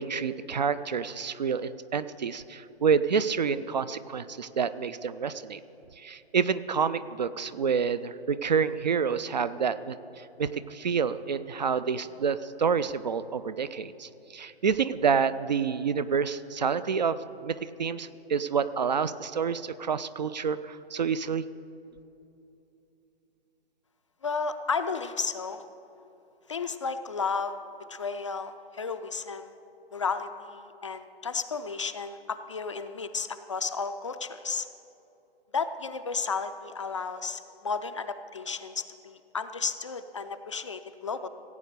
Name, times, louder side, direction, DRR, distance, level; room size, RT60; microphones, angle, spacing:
voice 1, 0.0-5.6 6.0-21.5, right 6 dB, 45° right, 15 dB, 0.4 m, -28 dB
voice 2, 24.2-25.6 26.5-27.5 27.9-29.5 29.9-34.7 35.5-41.3, left 5 dB, 30° left, 9 dB, 0.4 m, -33 dB
16.0 x 8.3 x 6.6 m, 2.8 s
figure-of-eight pair, 130°, 31 cm